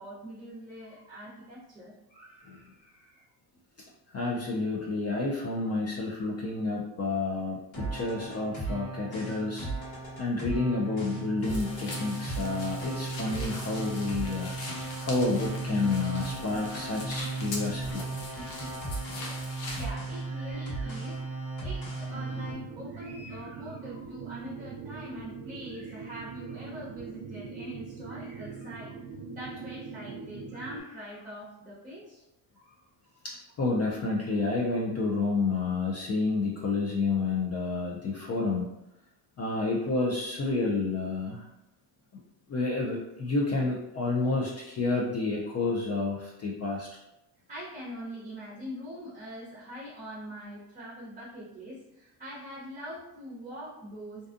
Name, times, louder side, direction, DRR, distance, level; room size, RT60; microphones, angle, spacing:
voice 1, 0.0-3.2 19.7-29.0 29.3-32.2 32.5-32.8 47.5-54.3, equal, 15° right, -8 dB, 0.7 m, -43 dB
voice 2, 4.1-9.7 10.2-14.7 15.0-18.1 33.2-38.7 39.4-41.5 42.5-46.9, left 3 dB, 35° left, -3 dB, 0.4 m, -30 dB
sound 1, 7.7-22.5, right 3 dB, 50° left, 1.5 m, -36 dB
sound 2, 11.4-19.9, left 2 dB, 70° left, 0.9 m, -42 dB
sound 3, 22.1-30.8, right 5 dB, 55° right, 0.5 m, -42 dB
2.6 x 2.2 x 2.5 m, 0.88 s
cardioid pair, 100°, 49 cm